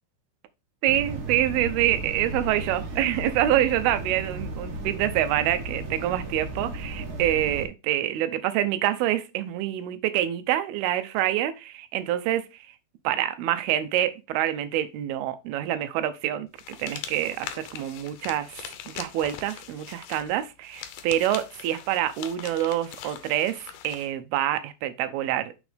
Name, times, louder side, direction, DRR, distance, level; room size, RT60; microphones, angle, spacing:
voice 1, 0.8-12.5 13.0-16.5 16.8-18.6 18.9-25.6, right 12 dB, 85° right, 2.7 m, -26 dB
sound 1, 0.9-7.7, right 2 dB, 60° right, 2.7 m, -35 dB
sound 2, 16.6-24.1, left 9 dB, 75° left, 2.2 m, -41 dB
6.3 x 6.2 x 3.4 m
omnidirectional pair, 4.4 m